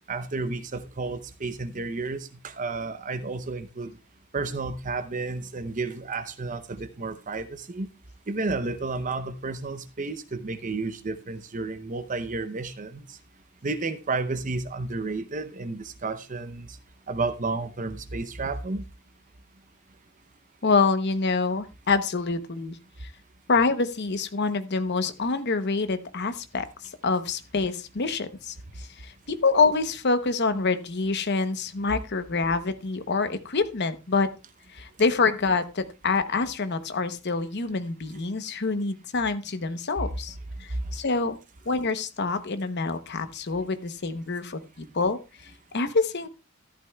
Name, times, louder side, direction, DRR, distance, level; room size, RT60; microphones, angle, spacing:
voice 1, 0.1-3.9 4.3-7.9 8.3-13.2 13.6-16.8 17.1-18.9, right 3 dB, 35° right, 0.7 m, -32 dB
voice 2, 20.6-23.1 23.5-34.3 34.7-41.4 41.7-46.3, left 4 dB, 50° left, 0.9 m, -26 dB
14.0 x 11.5 x 2.3 m
head